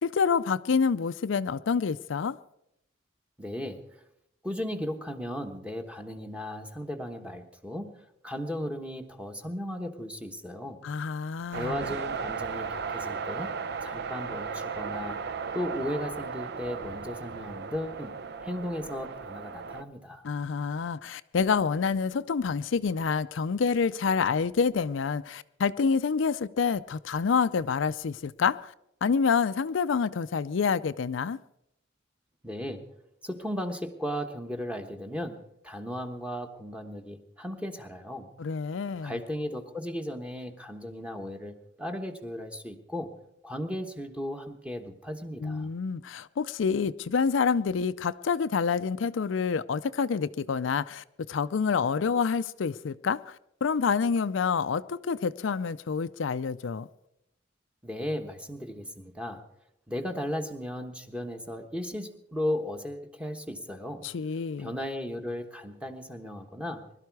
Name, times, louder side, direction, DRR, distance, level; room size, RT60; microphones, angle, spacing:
voice 1, 0.0-2.4 10.8-11.8 20.2-28.7 29.0-31.4 38.4-39.1 45.4-53.4 53.6-56.9 64.0-64.7, left 5 dB, 70° left, 0.4 m, -27 dB
voice 2, 3.4-3.8 4.4-7.9 8.2-10.8 11.5-13.5 13.8-15.2 15.5-18.1 18.4-20.2 32.4-32.8 33.2-38.3 39.0-43.1 43.4-45.7 57.8-59.4 59.9-64.1 64.6-66.8, left 1 dB, 5° right, 1.2 m, -36 dB
sound 1, 11.5-19.8, right 5 dB, 60° right, 0.7 m, -36 dB
21.0 x 12.5 x 4.7 m
head